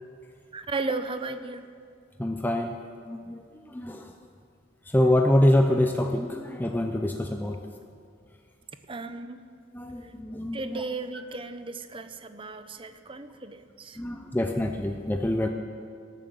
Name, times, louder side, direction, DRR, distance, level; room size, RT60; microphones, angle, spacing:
voice 1, 0.5-1.7 8.9-9.4 10.5-14.0, right 3 dB, 25° right, 10 dB, 0.7 m, -35 dB
voice 2, 2.2-2.8 3.1-4.1 4.9-7.6 9.7-10.8 14.0-15.5, left 1 dB, 10° left, 3 dB, 0.6 m, -25 dB
18.0 x 9.1 x 7.1 m, 2.3 s
head